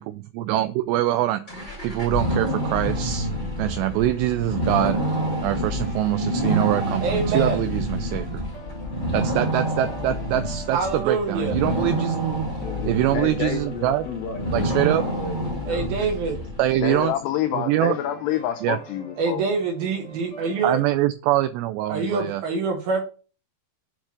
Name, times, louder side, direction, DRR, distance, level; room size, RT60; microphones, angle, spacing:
voice 1, 0.0-1.4 1.8-3.3 3.6-5.0 5.4-8.4 9.1-12.4 12.9-14.0 14.5-15.0 16.6-17.1 17.5-18.0 18.6-18.8 20.6-22.4, right 14 dB, 85° right, 2.4 m, -24 dB
sound 1, 1.5-16.9, right 1 dB, 20° left, 1.4 m, -28 dB
sound 2, 2.4-20.9, left 2 dB, 50° left, 3.8 m, -43 dB
voice 2, 7.0-7.6 10.7-11.6 15.7-16.4 19.2-20.8 21.9-23.0, right 4 dB, 70° right, 2.4 m, -25 dB
voice 3, 12.6-13.3 13.6-15.9, left 6 dB, 65° left, 2.4 m, -35 dB
voice 4, 13.1-13.6 16.8-19.4, left 11 dB, 85° left, 2.4 m, -27 dB
7.8 x 4.4 x 5.8 m
omnidirectional pair, 5.4 m